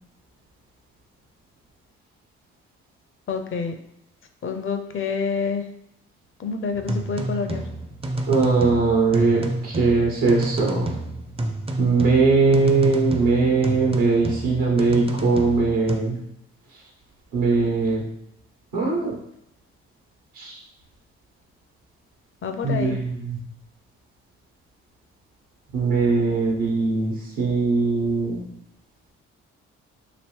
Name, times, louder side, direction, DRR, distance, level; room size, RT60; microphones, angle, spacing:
voice 1, 3.3-3.7 4.4-5.6 6.4-7.6 22.4-23.0, left 5 dB, 40° left, 6 dB, 0.5 m, -27 dB
sound 1, 6.7-16.0, right 1 dB, 20° right, 0.5 m, -29 dB
voice 2, 8.3-10.9 11.8-16.2 17.3-18.0 18.7-19.2 20.4-20.6 22.6-23.4 25.7-28.4, right 4 dB, 75° right, -3 dB, 1.0 m, -21 dB
3.0 x 2.7 x 3.1 m, 0.76 s
hypercardioid pair, 45°, 32 cm